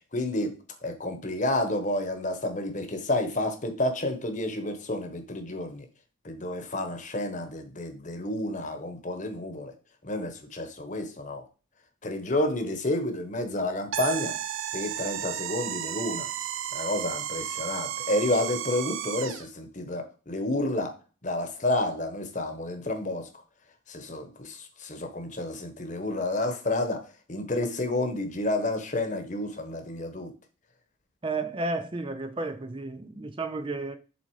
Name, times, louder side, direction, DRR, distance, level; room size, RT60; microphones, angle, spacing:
voice 1, 0.1-5.8 6.2-9.7 10.0-11.4 12.0-14.3 14.7-16.3 16.7-20.9 21.2-23.3 23.9-27.0 27.3-30.3, left 1 dB, 35° left, 1.2 m, -30 dB
sound 1, 13.9-19.5, right 10 dB, 80° right, 0.5 m, -33 dB
voice 2, 31.2-34.0, right 3 dB, 25° right, 0.5 m, -32 dB
7.4 x 3.9 x 4.8 m
head